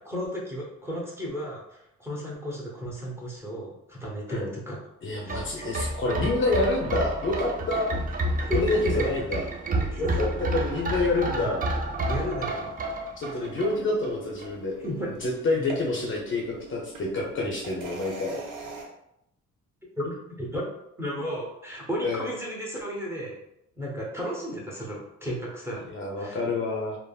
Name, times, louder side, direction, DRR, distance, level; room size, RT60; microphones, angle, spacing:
voice 1, 0.0-4.8 5.2-5.4 5.7-5.8 8.4-9.1 9.9-10.3 11.1-11.5 12.0-12.7 14.8-15.1 20.0-20.7 21.0-23.4 23.8-25.9 26.2-26.4, equal, 10° right, -3 dB, 0.8 m, -34 dB
voice 2, 5.0-7.9 8.5-9.4 10.0-10.3 10.5-11.6 13.2-14.7 15.2-18.4 22.0-22.3 25.9-27.0, left 2 dB, 40° left, -1 dB, 0.6 m, -27 dB
sound 1, 5.2-14.1 14.4-14.5, right 2 dB, 30° right, 0.5 m, -30 dB
sound 2, 13.2-18.9, right 3 dB, 80° right, 0.7 m, -43 dB
3.4 x 2.0 x 2.3 m, 0.81 s
cardioid pair, 90°, 30 cm